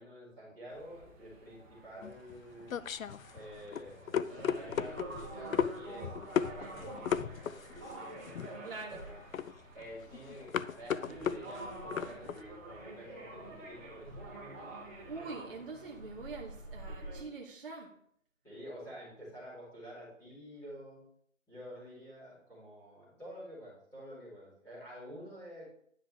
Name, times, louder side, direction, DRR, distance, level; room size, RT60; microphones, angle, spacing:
voice 1, 0.0-2.7 3.3-8.1 8.3-8.4 8.9-9.2 9.7-14.4 18.4-21.0 21.5-25.6, equal, 5° left, -12 dB, 3.2 m, -49 dB
sound 1, 0.7-17.2, right 2 dB, 10° right, 1.1 m, -47 dB
sound 2, 2.0-12.4, left 8 dB, 85° left, 0.6 m, -36 dB
voice 2, 8.6-9.1 15.1-17.9, right 4 dB, 45° right, -2 dB, 1.1 m, -44 dB
10.0 x 6.0 x 3.4 m, 0.66 s
hypercardioid pair, 175°, 40 cm